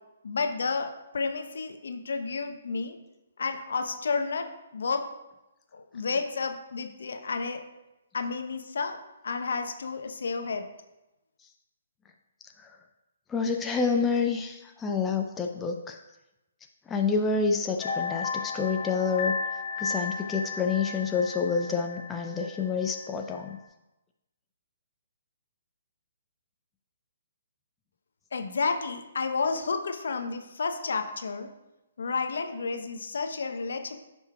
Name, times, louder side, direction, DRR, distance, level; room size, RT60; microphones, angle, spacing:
voice 1, 0.2-3.0 3.4-4.5 4.7-5.0 5.7-7.6 8.1-9.0 9.2-10.6 28.3-31.5 32.0-34.0, left 4 dB, 65° left, 6 dB, 0.8 m, -31 dB
voice 2, 13.3-16.0 16.9-19.4 19.8-23.6, left 5 dB, 10° left, 2 dB, 0.5 m, -28 dB
sound 1, 17.8-23.1 23.4-23.5, left 4 dB, 40° left, 1.2 m, -34 dB
14.0 x 5.4 x 2.3 m, 0.97 s
figure-of-eight pair, 130°, 0 cm